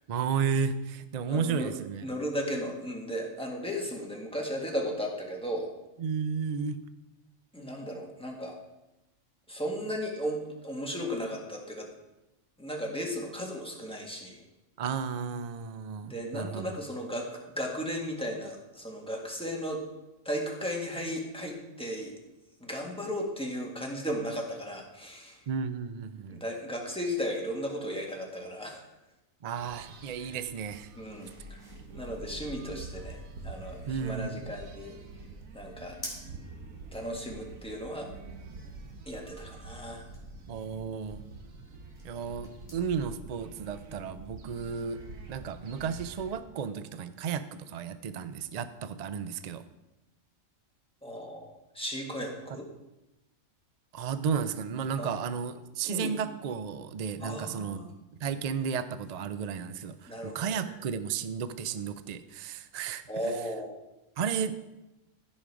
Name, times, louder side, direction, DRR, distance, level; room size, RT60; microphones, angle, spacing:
voice 1, 0.1-2.1 6.0-6.8 14.8-16.8 25.5-26.4 29.4-30.9 33.8-34.5 40.5-41.3 42.0-45.0 45.3-49.6 52.5-52.6 53.9-57.9 58.2-63.4 64.2-64.6, right 6 dB, 60° right, 12 dB, 0.4 m, -33 dB
voice 2, 1.3-1.7 2.0-5.7 7.5-8.5 9.5-11.9 12.6-14.4 16.0-19.8 20.3-22.1 22.6-25.4 26.3-28.8 31.0-31.6 31.9-35.0 35.5-36.0 36.9-38.1 39.1-40.1 51.0-52.7 55.0-55.1 55.9-56.1 57.2-57.9 60.1-60.7 63.1-63.8, equal, 5° left, -1 dB, 1.7 m, -35 dB
sound 1, 29.5-46.4, right 3 dB, 90° right, 1.5 m, -46 dB
sound 2, 29.7-43.0, left 1 dB, 35° left, 3.6 m, -52 dB
15.5 x 5.3 x 4.8 m, 0.97 s
omnidirectional pair, 1.4 m